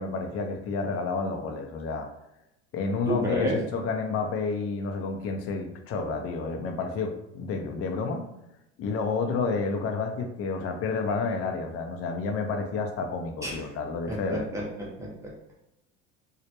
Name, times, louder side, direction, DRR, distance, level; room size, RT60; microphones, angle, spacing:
voice 1, 0.0-2.1 2.7-8.2 8.8-14.4, left 4 dB, 40° left, 4 dB, 0.5 m, -30 dB
voice 2, 3.1-3.6 13.4-13.6 14.1-15.3, equal, 10° right, -4 dB, 0.7 m, -30 dB
2.1 x 2.0 x 2.8 m, 0.88 s
supercardioid pair, 95°, 34 cm